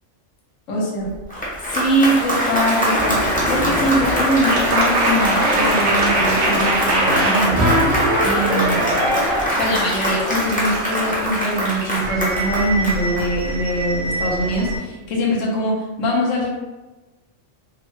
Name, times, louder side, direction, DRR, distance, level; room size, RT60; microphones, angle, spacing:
voice 1, 0.7-1.1 1.3-7.7 8.2-8.9 9.6-16.5, equal, 75° left, -3 dB, 1.1 m, -22 dB
Applause, 1.1-13.7, equal, 10° left, 0.6 m, -23 dB
sound 1, 2.9-14.8, right 1 dB, 80° right, 1.1 m, -23 dB
3.5 x 2.1 x 3.1 m, 1.2 s
omnidirectional pair, 1.3 m